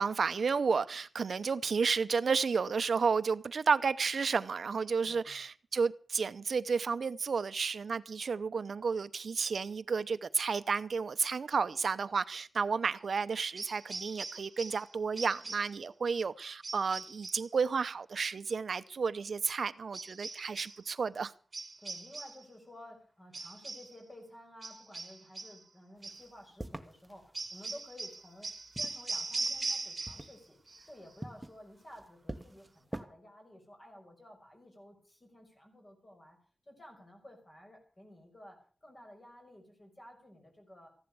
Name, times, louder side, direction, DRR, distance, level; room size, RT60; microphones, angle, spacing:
voice 1, 0.0-21.3, right 5 dB, 70° right, 14 dB, 0.7 m, -32 dB
voice 2, 5.0-5.4 21.8-36.4 36.7-40.9, left 1 dB, 30° left, 3 dB, 5.8 m, -53 dB
sound 1, 13.6-14.9 15.2-15.8 16.6-17.5 19.9-20.8 21.5-22.5 23.3-24.0 24.6-25.6 26.0-26.3 27.3-30.4 30.7-31.2, right 3 dB, 40° right, 1.5 m, -40 dB
sound 2, 26.0-27.9 28.5-29.8 30.0-33.0, right 1 dB, 10° right, 1.4 m, -46 dB
15.5 x 11.0 x 6.9 m, 0.41 s
wide cardioid pair, 130°, 0 cm